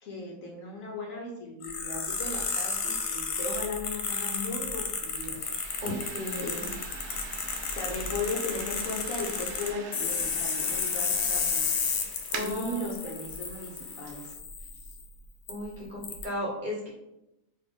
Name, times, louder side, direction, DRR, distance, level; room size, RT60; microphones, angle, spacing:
voice 1, 0.0-5.4 6.4-6.6 7.7-11.6 12.3-14.2, left 2 dB, 60° left, -1 dB, 1.1 m, -37 dB
sound 1, 1.6-15.0 15.5-15.6 16.0-16.2, left 5 dB, 80° left, 1.2 m, -32 dB
sound 2, 4.3-14.3, right 5 dB, 80° right, 1.1 m, -44 dB
voice 2, 5.8-6.7 12.3-12.9 15.5-16.9, equal, 35° right, -5 dB, 1.0 m, -35 dB
4.2 x 2.7 x 3.5 m, 0.92 s
omnidirectional pair, 1.7 m